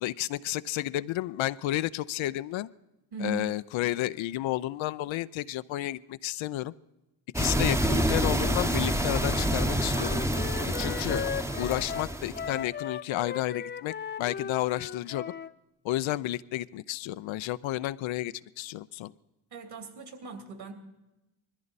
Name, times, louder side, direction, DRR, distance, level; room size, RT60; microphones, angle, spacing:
voice 1, 0.0-2.7 3.2-6.7 7.3-10.2 10.6-11.3 11.6-15.3 15.8-19.1, left 15 dB, 65° left, 15 dB, 0.6 m, -31 dB
voice 2, 3.1-3.6 19.5-20.7, right 3 dB, 50° right, 6 dB, 3.0 m, -38 dB
sound 1, 7.3-12.6, right 1 dB, 5° right, 1.0 m, -28 dB
Wind instrument woodwind instrument, 9.2-15.5, left 7 dB, 25° left, 0.4 m, -37 dB
20.5 x 14.5 x 4.1 m, 0.97 s
supercardioid pair, 65°, 49 cm